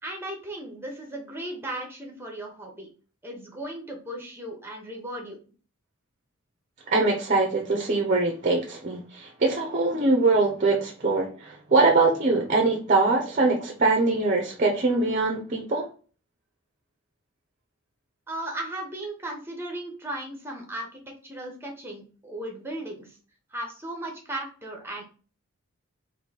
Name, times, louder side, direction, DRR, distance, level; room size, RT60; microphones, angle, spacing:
voice 1, 0.0-2.9 3.2-5.4 18.3-23.2 23.5-25.0, right 1 dB, 10° right, 1 dB, 1.0 m, -36 dB
voice 2, 6.9-15.8, right 3 dB, 35° right, 1 dB, 0.7 m, -23 dB
3.8 x 2.7 x 4.1 m, 0.38 s
head